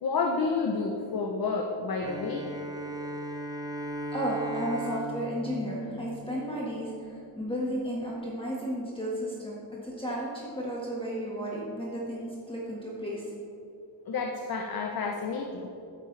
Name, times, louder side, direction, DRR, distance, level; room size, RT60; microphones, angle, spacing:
voice 1, 0.0-2.5 14.1-15.7, left 4 dB, 45° left, 2 dB, 0.9 m, -30 dB
Bowed string instrument, 2.0-6.7, right 1 dB, 10° right, 0.7 m, -37 dB
voice 2, 3.8-13.3, equal, 10° left, -6 dB, 1.7 m, -33 dB
14.5 x 8.7 x 3.3 m, 2.7 s
wide cardioid pair, 130°, 48 cm